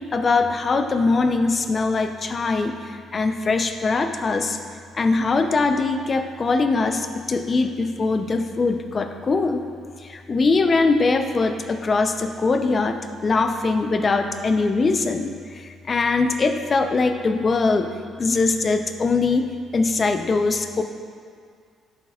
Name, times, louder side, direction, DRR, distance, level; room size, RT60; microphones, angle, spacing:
voice 1, 0.1-2.7 3.1-4.6 4.9-9.6 10.1-17.9 18.2-20.8, left 3 dB, 40° left, 7 dB, 0.6 m, -22 dB
10.5 x 7.9 x 2.4 m, 2.1 s
supercardioid pair, 70°, 0 cm